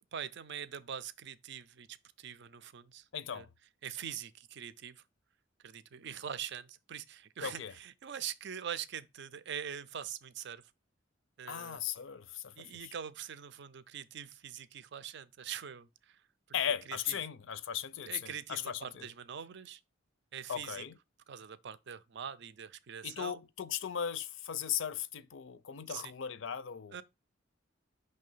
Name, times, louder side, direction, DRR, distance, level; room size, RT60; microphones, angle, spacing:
voice 1, 0.1-3.1 3.3-3.5 3.8-5.0 5.6-10.7 11.4-11.8 12.6-16.2 16.9-17.2 18.1-19.8 20.3-20.8 21.3-23.4 25.9-26.1 26.9-27.0, right 8 dB, 60° right, 0.5 m, -43 dB
voice 2, 3.1-3.5 7.4-7.7 11.5-12.9 16.5-19.1 20.5-20.9 23.0-27.0, left 9 dB, 70° left, 0.5 m, -37 dB
5.5 x 3.3 x 5.4 m
head